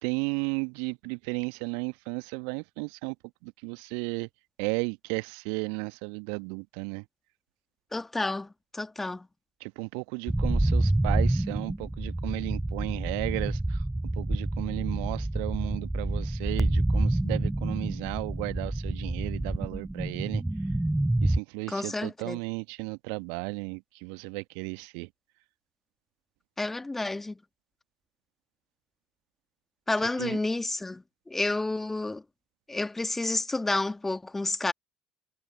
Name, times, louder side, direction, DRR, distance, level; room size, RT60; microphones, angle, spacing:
voice 1, 0.0-3.1 3.4-4.3 4.6-7.0 9.6-13.8 14.2-20.4 21.2-25.1 30.2-30.4, right 40 dB or more, 65° right, 1.3 m, -34 dB
voice 2, 7.9-9.3 21.7-22.4 26.6-27.4 29.9-32.2 32.7-34.7, left 2 dB, 15° left, 1.7 m, -30 dB
sound 1, 10.3-21.4, right 1 dB, 5° right, 0.6 m, -28 dB
figure-of-eight pair, 60°, 2 cm